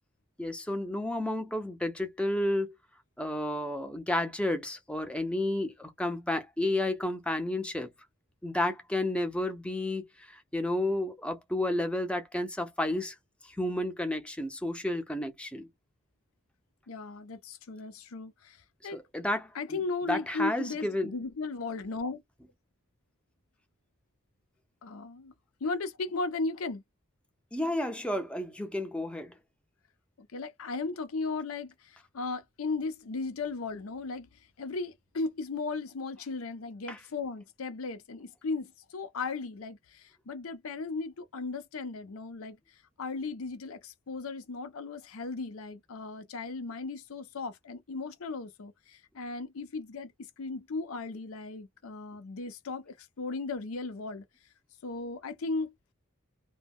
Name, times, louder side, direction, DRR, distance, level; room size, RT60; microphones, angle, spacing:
voice 1, 0.4-2.7 3.2-7.9 8.4-13.1 13.6-15.7 18.9-19.8 20.1-21.1 27.5-29.3 36.9-37.0, left 1 dB, 5° left, 0.5 m, -31 dB
voice 2, 16.9-18.6 18.8-19.0 19.5-22.2 24.8-25.3 25.6-26.8 30.2-34.3 34.6-42.6 43.0-50.1 50.4-54.2 54.8-55.7, left 3 dB, 85° left, 0.6 m, -36 dB
2.2 x 2.1 x 3.4 m
head